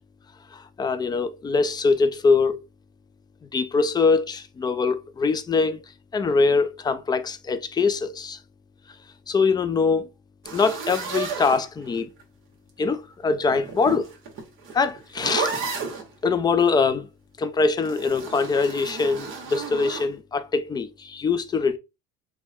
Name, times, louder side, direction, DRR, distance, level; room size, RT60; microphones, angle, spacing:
voice 1, 0.5-2.6 3.5-5.8 6.1-8.4 9.3-10.1 10.5-12.1 12.8-14.1 14.7-15.5 16.2-17.1 17.4-21.8, left 4 dB, 15° left, 0.4 m, -23 dB
sound 1, 10.4-12.2 13.4-16.1 17.8-20.1, right 5 dB, 45° right, 1.5 m, -32 dB
4.4 x 2.2 x 4.2 m
cardioid pair, 140°, 29 cm